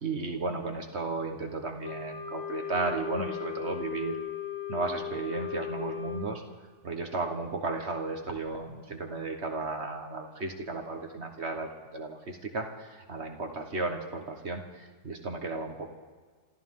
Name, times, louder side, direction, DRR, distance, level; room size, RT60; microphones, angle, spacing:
voice 1, 0.0-4.2 4.7-6.4 6.8-15.9, right 3 dB, 45° right, 4 dB, 1.5 m, -34 dB
Wind instrument woodwind instrument, 1.8-6.3, left 10 dB, 25° left, 3.4 m, -37 dB
27.0 x 14.5 x 3.7 m, 1.5 s
omnidirectional pair, 1.7 m